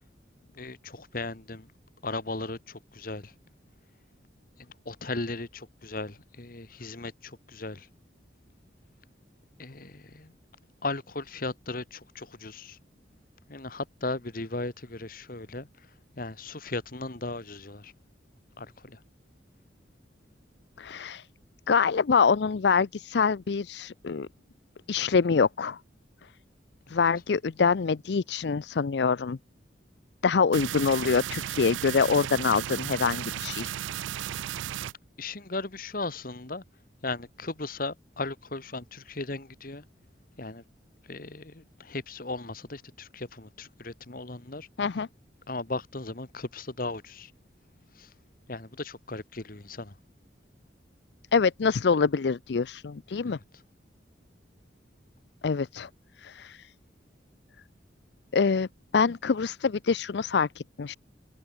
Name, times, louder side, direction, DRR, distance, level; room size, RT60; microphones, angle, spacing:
voice 1, 0.5-1.7 2.0-3.3 4.9-7.9 9.6-10.3 10.8-12.8 13.5-15.7 16.2-17.9 18.6-19.0 35.2-36.6 37.0-39.8 40.4-40.6 41.1-44.7 45.5-47.3 48.0-48.1 48.5-49.9 53.2-53.6, left 2 dB, 50° left, 1.6 m, -37 dB
voice 2, 20.8-21.3 21.7-24.3 24.9-25.8 26.9-29.4 30.2-33.7 44.8-45.1 51.3-53.4 55.4-55.9 56.2-56.7 58.3-58.7 58.9-60.9, left 5 dB, 65° left, 0.5 m, -25 dB
sound 1, 30.5-34.9, right 11 dB, 85° right, 0.3 m, -34 dB
head